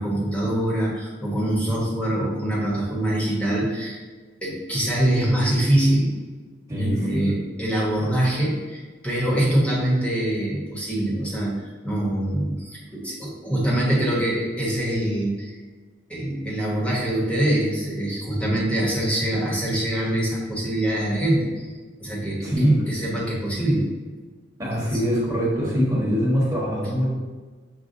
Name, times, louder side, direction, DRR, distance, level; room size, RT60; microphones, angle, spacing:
voice 1, 0.0-4.0 4.4-6.2 6.8-15.6 16.1-21.7 22.0-23.9, right 1 dB, 5° left, -6 dB, 1.0 m, -24 dB
voice 2, 6.7-7.3 22.4-22.8 24.6-27.1, equal, 15° right, -7 dB, 1.2 m, -23 dB
6.3 x 2.3 x 2.6 m, 1.4 s
head